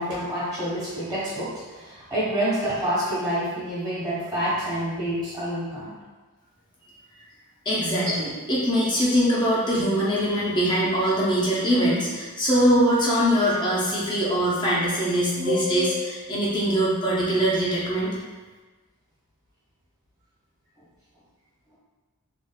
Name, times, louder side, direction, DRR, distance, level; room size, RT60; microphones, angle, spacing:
voice 1, 0.0-5.9 8.1-8.2 15.4-16.1, equal, 20° right, -10 dB, 1.3 m, -28 dB
voice 2, 7.7-18.2, equal, 20° left, -6 dB, 0.6 m, -22 dB
3.3 x 2.5 x 2.3 m, 1.3 s
head